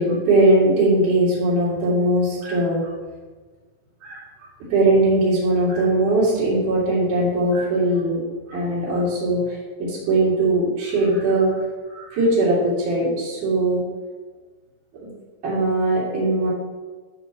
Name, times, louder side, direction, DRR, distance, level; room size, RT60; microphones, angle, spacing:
voice 1, 0.0-2.9 4.0-4.2 4.7-8.2 8.5-11.6 11.9-13.8 15.4-16.5, right 2 dB, 80° right, -8 dB, 4.0 m, -20 dB
13.5 x 6.1 x 3.0 m, 1.4 s
omnidirectional pair, 3.5 m